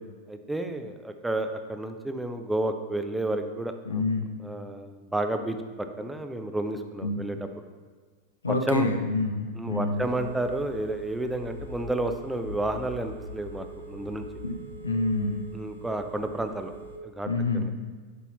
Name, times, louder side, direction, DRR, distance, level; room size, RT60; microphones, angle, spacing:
voice 1, 0.3-4.0 4.4-7.4 8.5-8.9 9.6-14.3 15.5-16.7 17.0-17.7, right 2 dB, 5° right, 7 dB, 0.6 m, -31 dB
voice 2, 3.8-4.3 7.0-7.2 8.4-10.1 14.4-14.6 14.8-15.4 17.3-17.7, left 3 dB, 75° left, 5 dB, 0.7 m, -27 dB
Telephone, 10.0-17.0, right 1 dB, 90° right, 0.7 m, -42 dB
8.3 x 5.6 x 3.0 m, 1.5 s
figure-of-eight pair, 90°, 0 cm